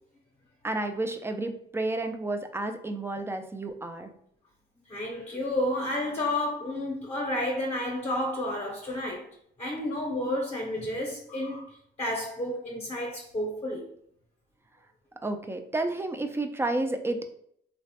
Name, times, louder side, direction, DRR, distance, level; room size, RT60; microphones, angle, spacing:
voice 1, 0.6-4.1 15.2-17.3, right 2 dB, 10° right, 0.3 m, -31 dB
voice 2, 4.9-9.2 9.6-13.9, left 1 dB, 30° left, 0.7 m, -31 dB
3.0 x 2.1 x 2.8 m
cardioid pair, 90°, 20 cm